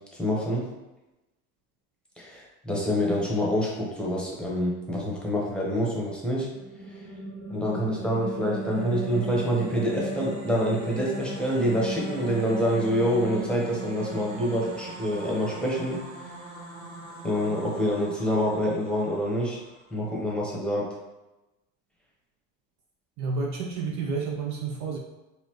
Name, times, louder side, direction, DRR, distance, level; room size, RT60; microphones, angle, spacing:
voice 1, 0.2-0.6 2.2-6.5 7.5-16.0 17.2-19.6 19.9-20.9, equal, ahead, -4 dB, 1.1 m, -26 dB
sound 1, 6.4-19.6, right 1 dB, 80° right, 1.4 m, -37 dB
voice 2, 23.2-25.0, right 4 dB, 50° right, 0 dB, 0.6 m, -30 dB
4.2 x 2.6 x 3.0 m, 1.0 s
hypercardioid pair, 85°, 38 cm